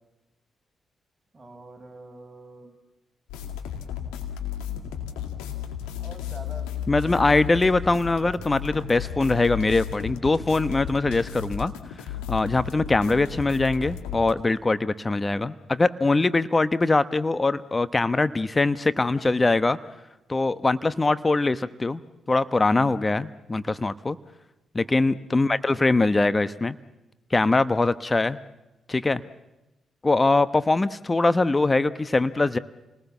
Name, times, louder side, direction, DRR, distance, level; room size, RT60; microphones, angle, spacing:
voice 1, 1.3-2.7 4.7-5.6 6.0-7.4 24.8-25.1, right 2 dB, 20° right, 2 dB, 7.5 m, -47 dB
sound 1, 3.3-14.3, left 9 dB, 85° left, 2.2 m, -34 dB
voice 2, 6.9-11.7 12.3-19.8 20.3-22.0 22.3-24.2 24.7-26.7 27.3-28.4 28.9-29.2 30.0-32.6, left 3 dB, 30° left, 13 dB, 1.0 m, -22 dB
30.0 x 20.0 x 7.2 m, 1.0 s
hypercardioid pair, 40°, 0 cm